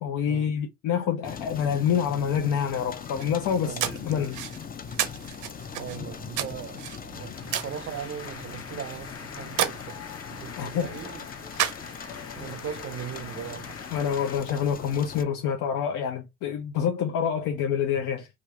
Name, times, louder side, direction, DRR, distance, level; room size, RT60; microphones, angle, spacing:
voice 1, 0.0-4.4 10.6-11.0 13.9-18.3, left 8 dB, 85° left, 0.5 m, -27 dB
sound 1, 1.2-15.2, left 7 dB, 30° left, 0.4 m, -41 dB
sound 2, 3.0-12.3, right 11 dB, 85° right, 0.6 m, -34 dB
voice 2, 3.6-4.1 5.7-10.0 10.3-11.3 12.0-13.7 14.5-14.6, right 8 dB, 45° right, 0.4 m, -39 dB
sound 3, 6.9-14.4, left 5 dB, 50° left, 0.9 m, -44 dB
3.0 x 2.5 x 3.1 m
cardioid pair, 90°, 30 cm